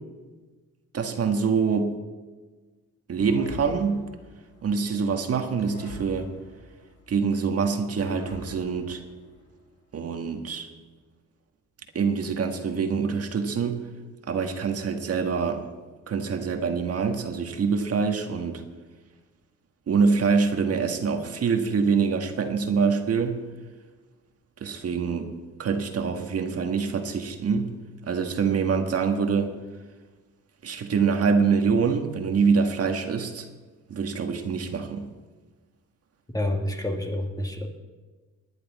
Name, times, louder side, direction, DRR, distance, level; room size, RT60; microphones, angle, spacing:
voice 1, 0.9-2.0 3.1-4.1 4.6-6.3 7.1-9.0 9.9-10.7 11.9-13.9 14.3-15.7 16.1-18.6 19.9-23.4 24.6-25.3 25.6-27.8 28.1-29.6 30.6-33.5 33.9-35.1, right 5 dB, 50° right, 5 dB, 1.7 m, -25 dB
sound 1, 3.2-5.1 5.6-7.5 8.0-9.7, left 3 dB, 75° left, 4.9 m, -43 dB
voice 2, 36.3-37.7, left 1 dB, 10° left, 2 dB, 2.3 m, -28 dB
18.5 x 10.5 x 4.2 m, 1.3 s
cardioid pair, 90°, 30 cm